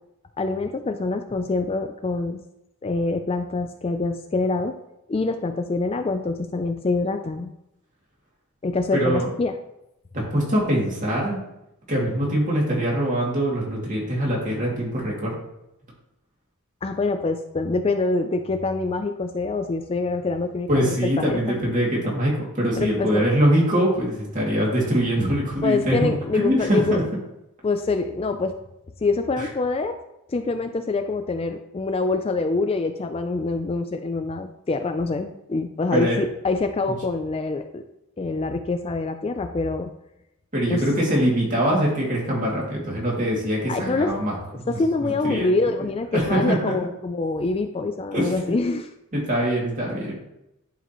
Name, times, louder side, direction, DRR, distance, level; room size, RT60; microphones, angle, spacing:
voice 1, 0.4-2.4 2.8-4.8 5.1-7.5 8.6-9.5 16.8-21.6 22.8-23.2 25.6-27.0 27.6-28.5 29.0-30.0 30.3-37.8 38.2-39.9 40.7-40.8 43.7-44.2 44.7-48.9, left 3 dB, 25° left, 7 dB, 0.3 m, -25 dB
voice 2, 8.9-9.3 10.1-11.4 11.9-15.3 20.7-27.0 29.4-29.5 35.9-36.2 40.5-44.3 44.6-45.5 45.8-46.7 48.1-48.5 49.1-50.1, right 1 dB, 35° right, -4 dB, 2.5 m, -23 dB
11.0 x 4.9 x 3.0 m, 0.87 s
head